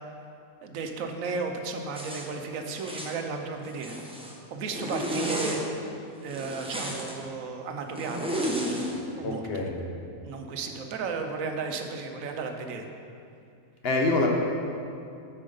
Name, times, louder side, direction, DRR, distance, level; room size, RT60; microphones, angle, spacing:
voice 1, 0.6-4.0 4.5-5.8 6.2-8.3 9.2-9.6 10.2-12.9, right 4 dB, 70° right, 5 dB, 1.1 m, -34 dB
Zipper (clothing), 1.9-2.3 2.7-3.2 3.6-4.4 4.7-5.6 6.3-7.1 8.0-8.9, equal, 5° right, 0.5 m, -32 dB
voice 2, 9.2-9.8 13.8-14.3, left 2 dB, 50° left, 1 dB, 1.0 m, -25 dB
8.6 x 4.6 x 5.4 m, 2.5 s
omnidirectional pair, 1.5 m